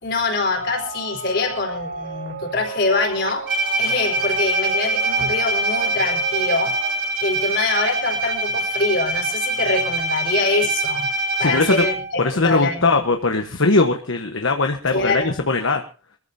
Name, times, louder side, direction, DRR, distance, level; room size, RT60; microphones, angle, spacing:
voice 1, 0.0-3.5 3.8-6.8 7.2-11.1 11.4-12.9 14.9-15.4, left 3 dB, 50° left, 4 dB, 4.2 m, -24 dB
Double Melodies, 0.5-6.9, right 3 dB, 80° right, 3.1 m, -35 dB
Bowed string instrument, 3.5-12.2, right 2 dB, 50° right, 7.6 m, -23 dB
voice 2, 11.4-11.9 12.2-15.8, left 3 dB, 70° left, 5 dB, 1.2 m, -20 dB
24.0 x 14.5 x 2.8 m, 0.34 s
head